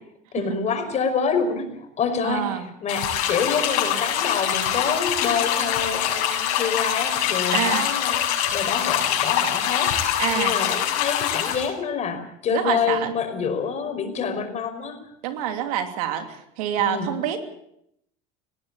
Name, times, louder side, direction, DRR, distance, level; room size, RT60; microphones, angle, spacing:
voice 1, 0.3-8.2 8.5-15.0 16.8-17.1, left 6 dB, 40° left, 6 dB, 5.4 m, -27 dB
voice 2, 2.2-2.7 7.5-7.9 10.2-10.6 12.5-13.1 15.2-17.4, right 10 dB, 85° right, 7 dB, 3.0 m, -26 dB
sound 1, 2.9-11.7, left 10 dB, 80° left, 7.0 m, -24 dB
19.5 x 17.5 x 8.7 m, 0.75 s
supercardioid pair, 115°, 18 cm